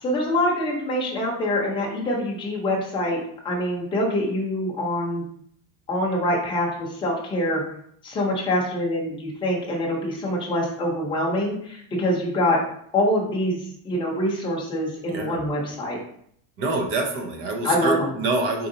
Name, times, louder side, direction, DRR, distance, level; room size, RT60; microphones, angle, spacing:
voice 1, 0.0-3.2 3.4-5.2 5.9-7.6 8.0-12.6 12.9-13.6 13.8-16.0 17.6-18.1, left 1 dB, 10° left, -3 dB, 0.7 m, -25 dB
voice 2, 16.6-18.7, right 2 dB, 30° right, 4 dB, 0.4 m, -26 dB
4.2 x 3.8 x 2.7 m, 0.67 s
cardioid pair, 175°, 44 cm